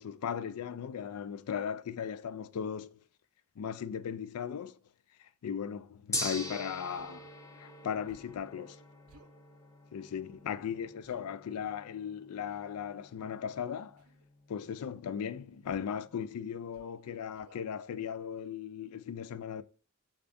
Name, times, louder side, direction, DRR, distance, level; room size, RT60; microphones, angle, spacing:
voice 1, 0.0-3.0 3.6-4.8 5.2-7.3 7.6-8.8 9.9-14.0 14.5-19.6, left 7 dB, 75° left, 0.4 m, -37 dB
Gong, 6.1-16.3, left 1 dB, 15° left, 0.6 m, -44 dB
Human voice, 6.9-7.2 8.1-8.5 9.1-9.4 11.0-11.3 12.5-12.8 14.0-14.3 15.6-16.0 16.7-17.0 17.3-17.6, right 3 dB, 75° right, 0.6 m, -61 dB
6.7 x 2.4 x 2.6 m
head